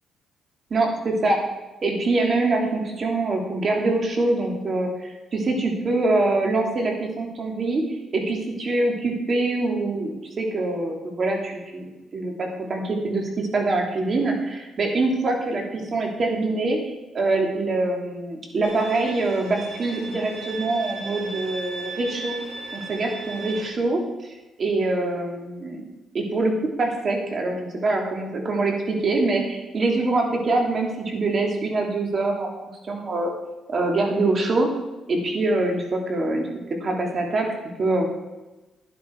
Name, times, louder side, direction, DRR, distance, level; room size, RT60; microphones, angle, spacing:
voice 1, 0.7-1.4 1.8-22.4 22.7-25.9 26.1-26.5 26.8-33.3 33.7-34.7 35.1-36.5 36.8-37.5 37.8-38.1, right 2 dB, 45° right, 2 dB, 2.8 m, -24 dB
Bowed string instrument, 18.6-23.7, right 3 dB, 25° right, 4.7 m, -36 dB
11.0 x 11.0 x 4.7 m, 1.1 s
cardioid pair, 90°, 0 cm